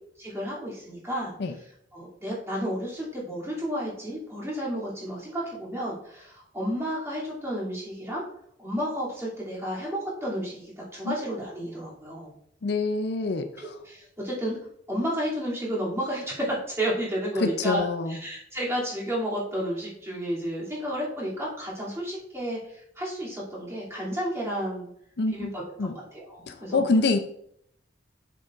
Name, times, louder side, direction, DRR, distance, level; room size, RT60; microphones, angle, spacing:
voice 1, 0.2-1.3 1.9-8.2 8.6-12.3 13.6-14.6 14.9-24.9 25.3-26.9, equal, 15° right, -7 dB, 2.7 m, -32 dB
voice 2, 12.6-13.5 17.4-18.2 25.2-25.5 25.8-25.9 26.5-27.2, left 3 dB, 60° left, 8 dB, 0.5 m, -25 dB
7.6 x 6.9 x 2.5 m, 0.69 s
head